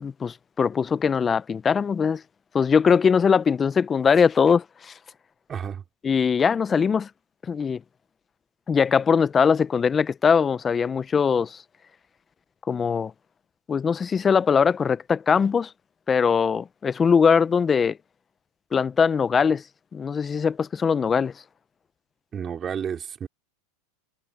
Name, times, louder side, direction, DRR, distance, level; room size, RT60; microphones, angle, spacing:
voice 1, 0.0-2.2 2.5-4.9 6.0-7.1 7.5-7.8 8.7-11.6 12.7-13.1 13.7-15.7 16.1-18.0 18.7-19.6 19.9-21.3, left 6 dB, 25° left, 1.0 m, -21 dB
voice 2, 5.5-5.8 22.3-23.3, right 8 dB, 30° right, 4.9 m, -31 dB
hypercardioid pair, 100°, 0 cm